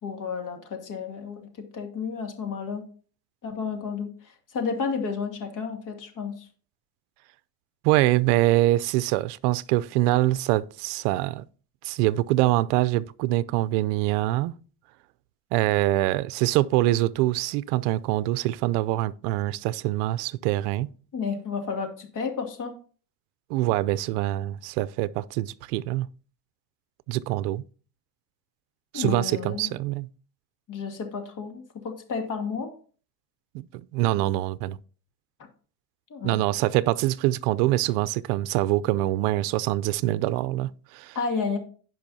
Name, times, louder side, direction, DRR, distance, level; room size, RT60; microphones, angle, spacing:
voice 1, 0.0-1.5 1.7-2.8 3.4-6.5 21.1-22.7 28.9-29.7 30.7-32.7 36.1-36.4 41.1-41.6, left 5 dB, 40° left, 2.5 m, -31 dB
voice 2, 7.8-11.4 11.8-14.5 15.5-20.9 23.5-26.1 27.1-27.6 28.9-30.1 33.5-33.7 33.9-34.8 36.2-41.2, right 16 dB, 65° right, 0.6 m, -24 dB
16.0 x 5.5 x 2.8 m
supercardioid pair, 105°, 48 cm